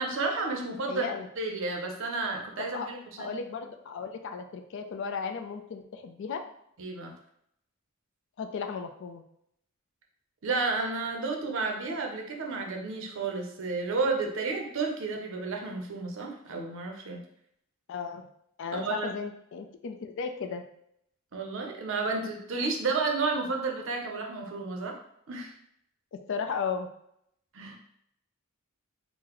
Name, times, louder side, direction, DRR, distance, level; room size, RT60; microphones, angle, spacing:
voice 1, 0.0-1.1 1.4-3.4 6.8-7.1 10.4-17.2 18.7-19.1 21.3-24.9 25.3-25.5 27.5-27.8, right 3 dB, 65° right, 1 dB, 0.6 m, -31 dB
voice 2, 0.9-1.3 2.6-2.9 3.2-6.4 8.4-9.2 17.9-18.3 18.6-20.6 26.3-26.9, left 5 dB, 60° left, 6 dB, 0.3 m, -35 dB
3.8 x 2.0 x 3.0 m, 0.74 s
head